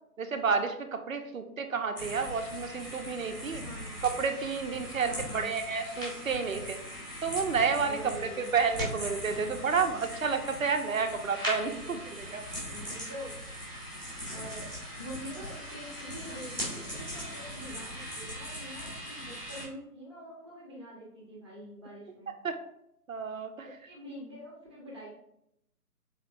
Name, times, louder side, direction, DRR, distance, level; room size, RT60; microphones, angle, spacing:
voice 1, 0.2-3.6 4.0-6.8 7.2-8.0 8.5-12.0 12.3-12.4 22.4-22.6 23.1-23.5, right 5 dB, 60° right, 7 dB, 0.6 m, -30 dB
sound 1, 2.0-19.7, equal, 5° left, 1.1 m, -40 dB
voice 2, 3.5-3.9 5.0-5.5 7.8-8.5 11.5-13.4 14.3-22.3 23.6-25.1, equal, 20° right, -4 dB, 0.7 m, -45 dB
4.2 x 3.2 x 2.4 m, 0.78 s
figure-of-eight pair, 145°, 47 cm